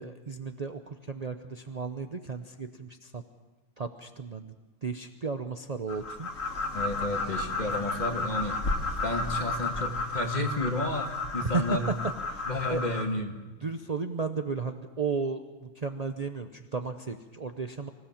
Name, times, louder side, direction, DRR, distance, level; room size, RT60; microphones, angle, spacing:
voice 1, 0.0-3.2 3.8-4.5 4.8-6.3 11.3-11.9 12.3-12.8 13.6-17.9, right 4 dB, 35° right, 7 dB, 0.8 m, -34 dB
sound 1, 5.9-13.0, left 3 dB, 80° left, 2.3 m, -32 dB
voice 2, 6.7-8.6 9.0-11.9 12.5-13.3, left 1 dB, 35° left, 4 dB, 1.8 m, -31 dB
25.0 x 16.0 x 7.2 m, 1.2 s
omnidirectional pair, 1.3 m